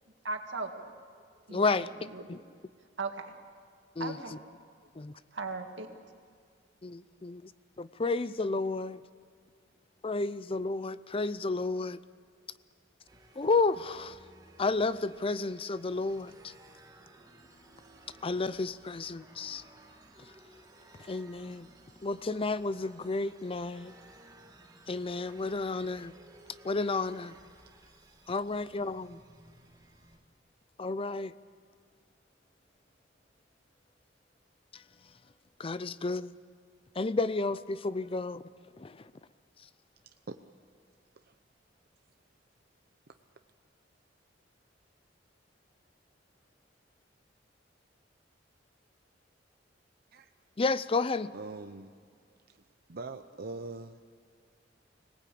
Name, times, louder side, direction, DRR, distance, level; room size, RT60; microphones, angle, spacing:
voice 1, 0.2-0.9 1.5-2.4 3.0-3.3 4.0-4.3 5.3-5.9, right 3 dB, 85° right, 4 dB, 2.2 m, -38 dB
voice 2, 1.5-1.9 2.3-2.4 4.0-4.2 5.0-5.1 6.8-7.5 7.8-9.0 10.0-12.0 13.4-14.2 14.6-16.5 18.2-19.6 21.0-21.7 22.0-23.9 24.9-26.1 26.6-27.4 28.3-29.2 30.8-31.3 34.7-34.8 35.6-36.3 37.0-38.4 38.8-39.1 50.6-51.3, left 3 dB, 30° left, 16 dB, 0.5 m, -31 dB
sound 1, 13.0-30.2, right 2 dB, 20° right, 2.5 m, -57 dB
voice 3, 51.3-51.9 52.5-52.6 52.9-54.0, right 3 dB, 55° right, 7 dB, 0.8 m, -42 dB
25.5 x 18.5 x 8.6 m, 2.1 s
head